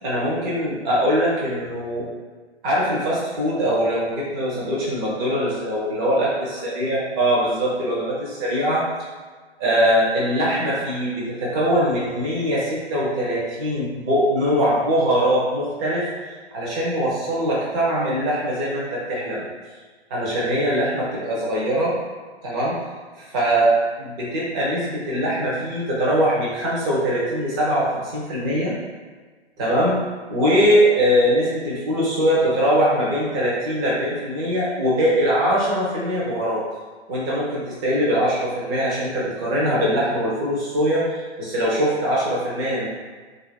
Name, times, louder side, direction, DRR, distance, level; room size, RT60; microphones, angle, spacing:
voice 1, 0.0-2.1 2.6-8.8 9.6-16.1 16.5-19.4 20.1-22.0 22.4-22.7 23.2-28.7 29.6-30.0 30.3-36.6 37.1-42.9, equal, 20° right, -6 dB, 0.6 m, -22 dB
2.5 x 2.4 x 2.2 m, 1.4 s
figure-of-eight pair, 125°, 34 cm